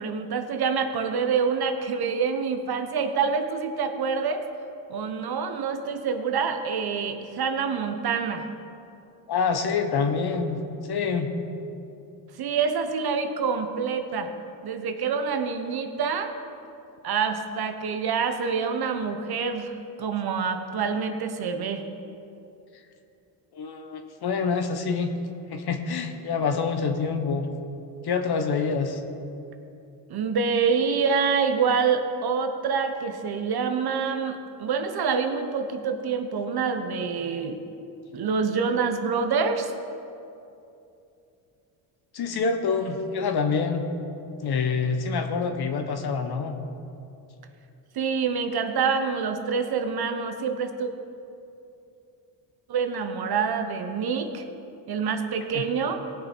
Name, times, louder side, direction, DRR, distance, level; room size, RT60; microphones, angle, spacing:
voice 1, 0.0-4.5 4.9-8.4 12.4-14.3 14.6-16.3 17.0-19.7 20.0-21.8 30.1-37.6 38.1-39.7 47.9-50.9 52.7-54.4 54.9-56.0, right 5 dB, 50° right, 7 dB, 1.1 m, -26 dB
voice 2, 9.3-10.6 10.9-11.3 23.5-25.1 25.5-27.5 28.0-29.0 42.1-43.9 44.4-46.6 55.5-55.6, left 5 dB, 50° left, 6 dB, 1.3 m, -26 dB
18.0 x 6.6 x 4.6 m, 2.7 s
supercardioid pair, 80°, 47 cm